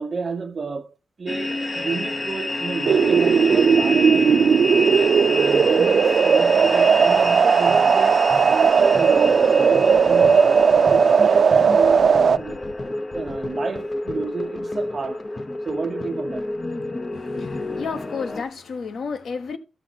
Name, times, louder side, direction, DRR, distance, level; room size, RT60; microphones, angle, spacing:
voice 1, 0.0-4.8 5.3-12.6 13.1-15.2 15.6-16.5, right 4 dB, 40° right, 0.9 m, -30 dB
sound 1, 1.3-18.4, left 2 dB, 30° left, 0.7 m, -29 dB
sound 2, 2.8-12.4, right 6 dB, 60° right, 0.4 m, -17 dB
voice 2, 17.1-19.6, left 5 dB, 70° left, 1.0 m, -32 dB
13.5 x 5.9 x 4.0 m
wide cardioid pair, 135°, 0 cm